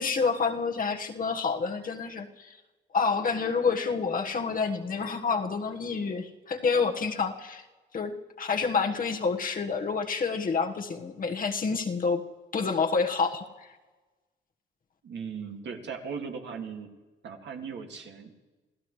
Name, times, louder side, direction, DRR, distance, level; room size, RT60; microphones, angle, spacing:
voice 1, 0.0-2.6 2.9-7.7 7.9-12.2 12.5-13.4, left 5 dB, 45° left, 3 dB, 1.4 m, -28 dB
voice 2, 15.0-16.9 17.2-18.3, right 6 dB, 65° right, 3 dB, 2.2 m, -38 dB
28.0 x 15.5 x 3.2 m, 1.2 s
cardioid pair, 90°, 20 cm